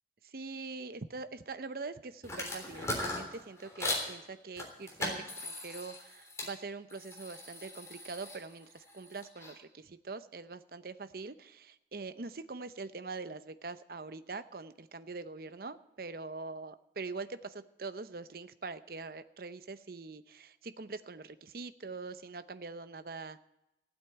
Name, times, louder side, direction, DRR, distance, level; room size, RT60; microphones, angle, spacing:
voice 1, 0.3-23.4, right 3 dB, 55° right, 12 dB, 0.7 m, -43 dB
sound 1, 2.2-4.1 4.6-6.5 6.9-9.5, left 2 dB, 15° left, 3.4 m, -39 dB
15.5 x 8.2 x 8.9 m, 0.88 s
head